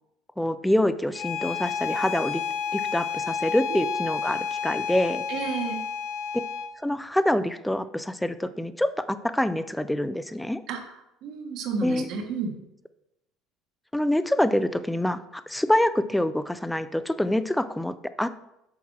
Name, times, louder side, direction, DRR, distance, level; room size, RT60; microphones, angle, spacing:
voice 1, 0.4-2.4 2.7-5.2 6.8-10.6 11.8-12.1 13.9-18.3, left 1 dB, 5° left, 13 dB, 0.3 m, -26 dB
Bowed string instrument, 1.1-6.7, left 6 dB, 50° left, 0.7 m, -30 dB
voice 2, 5.3-5.8 10.7-10.8 11.2-12.5, right 5 dB, 55° right, 3 dB, 1.4 m, -31 dB
7.2 x 5.9 x 4.7 m, 0.86 s
cardioid pair, 165°, 0 cm